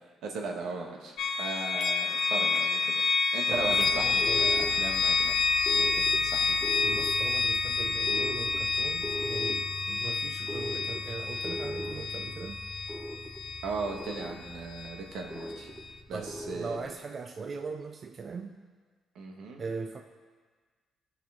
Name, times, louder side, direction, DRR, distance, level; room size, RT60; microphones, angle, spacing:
voice 1, 0.2-3.0 3.3-5.5 5.8-6.7 13.6-15.7 16.1-16.8 19.1-19.6, right 3 dB, 80° right, 1 dB, 1.4 m, -38 dB
sound 1, 1.2-15.0, left 4 dB, 75° left, 0.7 m, -29 dB
sound 2, 3.5-16.9, equal, 5° right, 1.1 m, -40 dB
voice 2, 3.5-4.6 6.8-12.6 16.1-18.6 19.6-20.0, right 4 dB, 45° right, 5 dB, 0.5 m, -40 dB
16.5 x 5.5 x 3.6 m, 1.5 s
cardioid pair, 90°, 0 cm